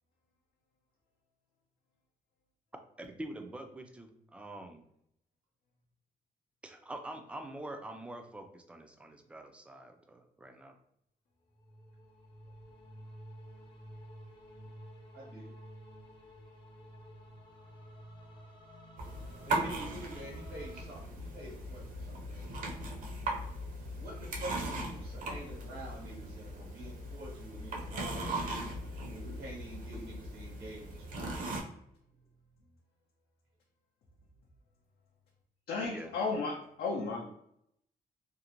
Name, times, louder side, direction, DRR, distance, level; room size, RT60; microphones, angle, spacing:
voice 1, 3.0-4.9 6.6-10.7 35.9-36.1, right 1 dB, 5° right, 5 dB, 0.3 m, -45 dB
sound 1, 11.5-20.9, equal, 30° left, 0.7 m, -52 dB
voice 2, 15.1-15.5 19.5-22.4 24.0-28.6 29.1-31.6, right 1 dB, 80° right, -3 dB, 1.1 m, -47 dB
sound 2, 19.0-31.6, right 1 dB, 55° right, 0.6 m, -39 dB
voice 3, 35.7-37.3, left 4 dB, 70° left, -2 dB, 0.5 m, -34 dB
2.5 x 2.0 x 2.9 m, 0.74 s
cardioid pair, 125°, 16 cm